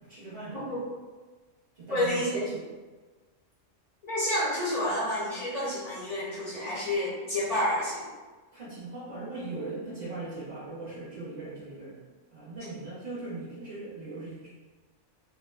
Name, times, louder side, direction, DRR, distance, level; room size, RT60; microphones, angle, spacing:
voice 1, 0.0-0.7 1.8-2.6 8.5-12.0 12.3-14.5, right 2 dB, 50° right, -9 dB, 0.5 m, -39 dB
voice 2, 1.9-2.4 4.1-8.1, left 1 dB, 50° left, -7 dB, 0.5 m, -29 dB
2.8 x 2.0 x 2.3 m, 1.3 s
omnidirectional pair, 1.3 m